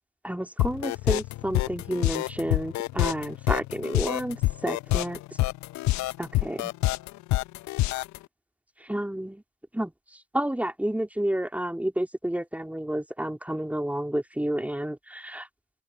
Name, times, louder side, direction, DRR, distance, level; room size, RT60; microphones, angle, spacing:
voice 1, 0.2-5.2 6.2-6.7 8.8-9.4 9.7-15.5, right 1 dB, 5° right, 3.3 m, -30 dB
sound 1, 0.6-8.2, left 18 dB, 55° left, 1.3 m, -26 dB
open air
figure-of-eight pair, 45°, 33 cm